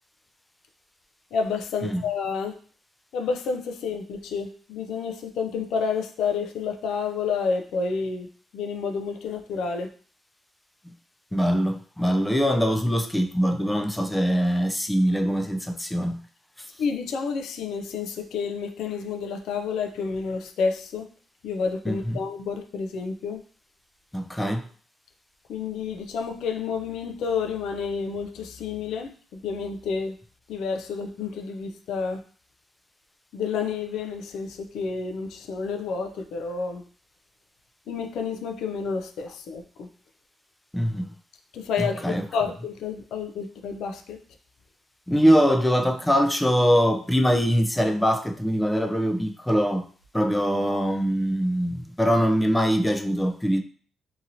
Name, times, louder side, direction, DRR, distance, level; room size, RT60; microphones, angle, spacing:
voice 1, 1.3-2.5 3.1-8.3 8.5-9.9 16.8-21.1 21.4-23.4 25.5-30.2 30.5-32.2 33.3-36.8 37.9-39.9 41.5-44.2, left 5 dB, 80° left, 5 dB, 0.4 m, -30 dB
voice 2, 11.3-16.2 21.9-22.2 24.1-24.7 40.7-41.1 41.8-42.2 45.1-49.9 50.1-53.6, equal, 10° left, 6 dB, 0.3 m, -23 dB
2.8 x 2.6 x 2.6 m, 0.43 s
cardioid pair, 90°, 0 cm